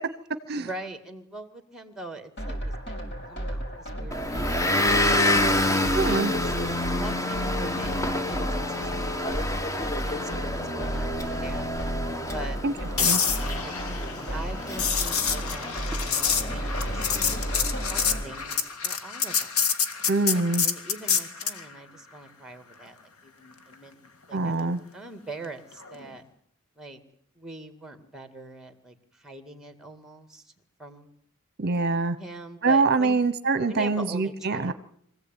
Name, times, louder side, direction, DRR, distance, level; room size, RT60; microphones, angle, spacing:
voice 1, 0.6-3.0 3.3-6.5 6.9-9.4 10.0-11.7 12.3-13.2 13.6-13.7 14.3-19.7 20.3-23.0 23.2-26.2 26.8-27.0 27.4-30.5 30.8-31.1 32.2-33.2 33.7-34.7, right 2 dB, ahead, 8 dB, 2.2 m, -42 dB
sound 1, 2.4-18.2, right 1 dB, 50° left, 5.6 m, -34 dB
Motor vehicle (road) / Engine, 4.1-18.3, left 1 dB, 15° left, 1.1 m, -28 dB
voice 2, 5.9-6.3 12.6-12.7 13.0-13.2 20.1-20.7 24.3-24.8 31.6-32.2 32.6-34.7, right 3 dB, 45° right, 11 dB, 0.9 m, -24 dB
sound 2, 13.0-21.6 25.8-26.0, left 6 dB, 80° left, 2.0 m, -27 dB
24.0 x 16.0 x 9.1 m, 0.69 s
head